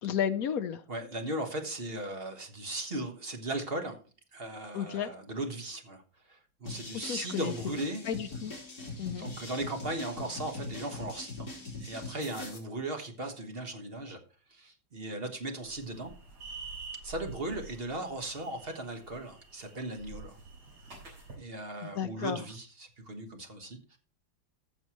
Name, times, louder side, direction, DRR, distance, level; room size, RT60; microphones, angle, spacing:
voice 1, 0.0-0.8 4.7-5.1 7.0-7.5 8.1-8.5 9.0-9.3 22.0-22.4, left 8 dB, 65° left, 10 dB, 0.9 m, -32 dB
voice 2, 0.9-4.0 4.3-6.0 6.3-8.1 9.2-14.2 14.5-16.1 17.0-20.4 21.3-24.0, right 1 dB, 35° right, 4 dB, 1.4 m, -37 dB
sound 1, 6.7-12.6, left 2 dB, 50° left, 3.9 m, -42 dB
sound 2, 15.6-21.3, right 4 dB, 55° right, 4.0 m, -47 dB
14.5 x 6.7 x 3.0 m, 0.37 s
omnidirectional pair, 2.1 m